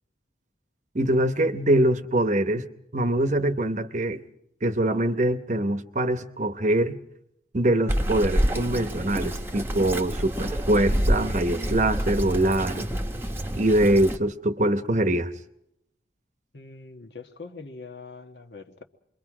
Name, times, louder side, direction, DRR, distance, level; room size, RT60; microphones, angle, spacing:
voice 1, 0.9-2.7 2.9-4.2 4.6-7.0 7.5-12.9 13.6-15.3, right 1 dB, 40° right, 10 dB, 0.9 m, -23 dB
Bird vocalization bird call bird song, 7.9-14.2, equal, 10° right, 1.0 m, -27 dB
voice 2, 16.5-18.8, left 4 dB, 65° left, 5 dB, 1.3 m, -43 dB
28.0 x 22.5 x 4.9 m, 0.81 s
head